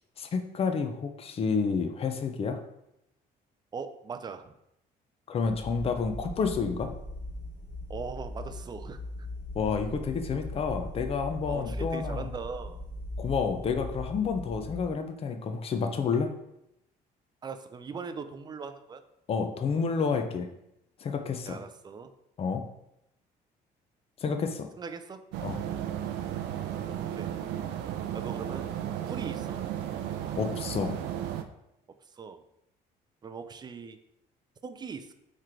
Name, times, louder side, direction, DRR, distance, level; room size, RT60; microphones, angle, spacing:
voice 1, 0.2-2.6 5.3-6.9 9.5-12.3 13.2-16.3 19.3-20.5 21.0-21.6 22.4-22.6 24.2-24.7 25.4-25.6 30.4-31.0, left 5 dB, 35° left, 7 dB, 0.5 m, -29 dB
voice 2, 3.7-4.5 7.9-9.0 11.5-12.8 17.4-19.0 21.4-22.1 24.8-25.2 27.1-27.3 28.1-28.7 29.1-29.6 32.1-32.4 33.2-34.0 34.6-35.1, right 5 dB, 25° right, 9 dB, 0.4 m, -40 dB
sound 1, 5.4-14.9, left 1 dB, 10° left, 1.3 m, -39 dB
sound 2, 25.3-31.4, right 10 dB, 90° right, 0.4 m, -34 dB
3.7 x 3.2 x 4.4 m, 0.81 s
cardioid pair, 110°, 17 cm